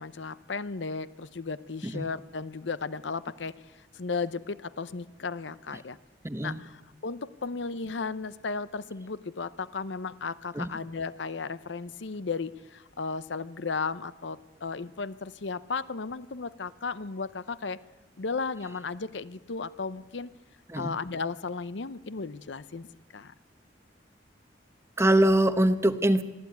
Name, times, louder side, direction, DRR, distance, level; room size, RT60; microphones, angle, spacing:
voice 1, 0.0-3.6 3.9-6.0 6.4-17.8 18.2-20.3 20.8-22.9 23.1-23.3, left 4 dB, 70° left, 16 dB, 0.7 m, -35 dB
voice 2, 6.2-6.6 10.5-10.7 20.7-21.0 25.0-26.2, right 1 dB, 15° right, 11 dB, 1.0 m, -23 dB
24.0 x 14.0 x 9.4 m, 1.2 s
head